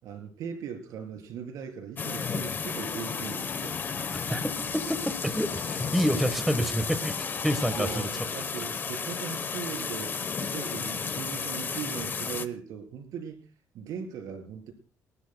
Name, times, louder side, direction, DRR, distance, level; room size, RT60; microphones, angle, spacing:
voice 1, 0.0-3.8 7.8-13.4 13.7-14.7, right 7 dB, 75° right, 4 dB, 3.8 m, -39 dB
sound 1, 2.0-12.4, left 5 dB, 35° left, 1.0 m, -33 dB
Piano, 2.4-8.1, left 6 dB, 50° left, 1.2 m, -45 dB
voice 2, 4.3-7.2 7.4-8.1, equal, ahead, 9 dB, 1.3 m, -28 dB
29.0 x 13.0 x 2.3 m, 0.39 s
cardioid pair, 125°, 6 cm